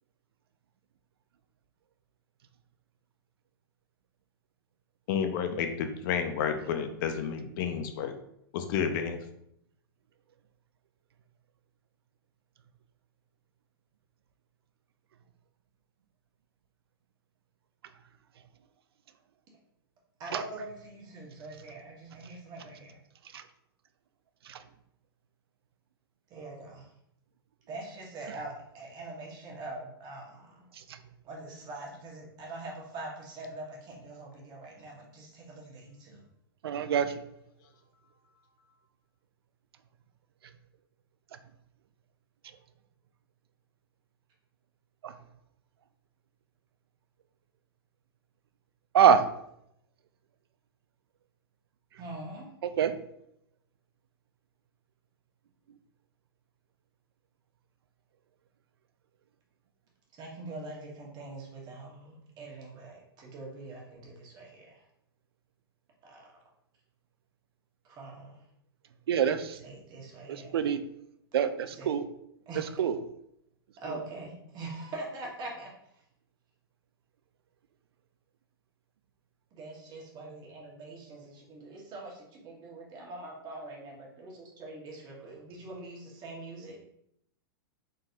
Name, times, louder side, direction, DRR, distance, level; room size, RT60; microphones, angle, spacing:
voice 1, 5.1-8.1 8.5-9.2, left 7 dB, 55° left, 7 dB, 0.6 m, -30 dB
voice 2, 20.2-23.0 26.3-26.9 27.7-30.7 31.2-36.2 52.0-52.5 60.1-64.9 66.0-66.3 67.8-68.5 69.6-70.6 71.6-71.9 72.4-72.7 73.8-76.0 79.5-86.8, right 2 dB, 35° right, -2 dB, 1.5 m, -43 dB
voice 3, 36.6-37.1 45.0-45.1 48.9-49.2 52.8-52.9 69.1-69.6 70.5-70.8 71.3-72.0 72.8-73.0, right 8 dB, 80° right, 11 dB, 0.4 m, -24 dB
4.0 x 3.9 x 2.7 m, 0.75 s
hypercardioid pair, 120°, 13 cm